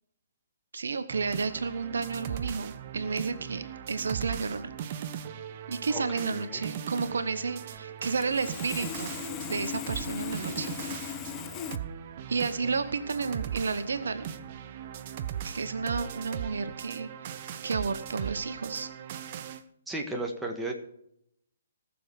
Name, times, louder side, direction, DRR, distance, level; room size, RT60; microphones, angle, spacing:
voice 1, 0.7-4.7 5.7-9.1 9.4-10.7 12.3-14.2 15.4-17.1 17.6-18.9, right 4 dB, 60° right, 11 dB, 1.0 m, -31 dB
sound 1, 1.1-19.6, right 9 dB, 35° right, 0.8 m, -39 dB
voice 2, 5.9-6.7 19.9-20.7, right 2 dB, 5° right, 0 dB, 1.7 m, -35 dB
Sawing, 7.8-7.9 8.2-11.8, left 13 dB, 20° left, 0.5 m, -38 dB
18.5 x 7.1 x 4.9 m, 0.74 s
figure-of-eight pair, 130°, 0 cm